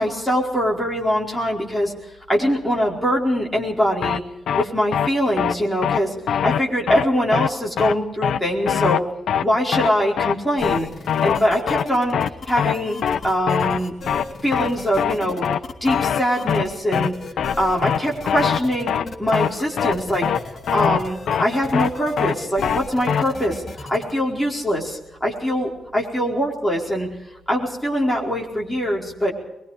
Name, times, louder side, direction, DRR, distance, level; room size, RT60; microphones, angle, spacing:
voice 1, 0.0-1.9 2.3-4.2 4.5-6.1 6.4-9.0 9.4-10.9 11.2-12.2 12.5-13.0 13.2-13.9 14.4-15.4 15.8-17.1 17.6-20.3 20.7-27.1 27.5-29.3, equal, ahead, -3 dB, 4.6 m, -22 dB
sound 1, 4.0-4.2 4.5-4.6 4.9-5.1 5.4-5.5 5.8-6.0 6.3-6.6 6.9-7.0 7.3-7.5 7.8-7.9 8.2-8.4 8.7-9.0 9.3-9.4 9.7-9.9 10.2-10.3 10.6-10.8 11.1-11.4 11.7-11.8 12.1-12.3 12.6-12.7 13.0-13.2 13.5-13.8 14.1-14.2 14.5-14.7 15.0-15.1 15.4-15.6 15.9-16.2 16.5-16.6 16.9-17.1 17.4-17.5 17.8-18.0 18.3-18.6 18.9-19.0 19.3-19.5 19.8-19.9 20.2-20.4 20.7-21.0 21.3-21.4 21.7-21.9 22.2-22.3 22.6-22.8 23.1-23.2, left 8 dB, 75° left, 0.8 m, -21 dB
sound 2, 10.6-24.1, left 3 dB, 35° left, 3.3 m, -37 dB
23.5 x 22.0 x 5.0 m, 0.93 s
wide cardioid pair, 165°, 0 cm